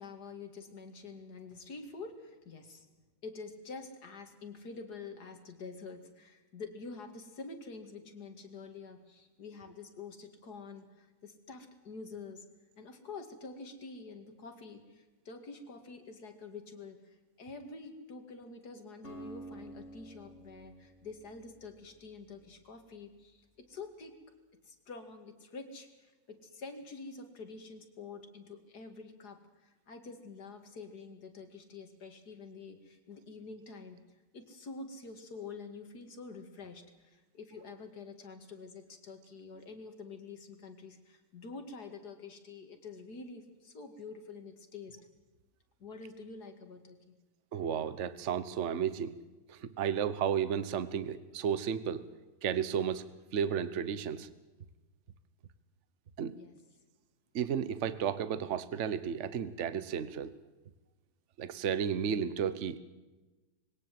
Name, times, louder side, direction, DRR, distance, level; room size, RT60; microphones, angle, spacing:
voice 1, 0.0-2.9 3.2-12.5 12.8-24.2 24.6-34.0 34.3-45.0 45.8-47.2 56.3-56.6, left 4 dB, 55° left, 6 dB, 2.7 m, -47 dB
Acoustic guitar, 19.0-23.1, right 1 dB, 35° left, 2.7 m, -51 dB
voice 2, 47.5-49.1 49.5-52.0 52.4-53.0 53.3-54.3 56.2-56.3 57.3-60.3 61.4-62.8, right 8 dB, 45° right, 14 dB, 1.1 m, -33 dB
21.5 x 17.5 x 7.7 m, 1.1 s
omnidirectional pair, 2.1 m